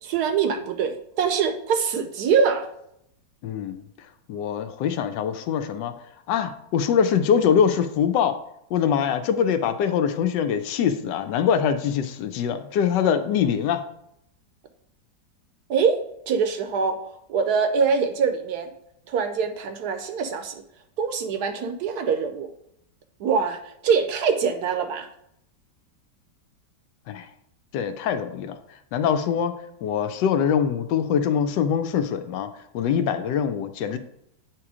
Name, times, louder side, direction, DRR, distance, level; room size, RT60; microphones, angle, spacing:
voice 1, 0.0-2.7 15.7-17.0 17.3-18.7 19.1-20.6 21.0-22.5 23.2-25.1, right 6 dB, 70° right, 7 dB, 1.1 m, -24 dB
voice 2, 3.4-3.8 4.3-5.9 6.3-8.3 8.7-13.8 27.1-27.3 27.7-28.6 28.9-29.5 29.8-34.0, left 8 dB, 80° left, 9 dB, 1.2 m, -23 dB
8.5 x 3.0 x 4.8 m, 0.77 s
omnidirectional pair, 1.9 m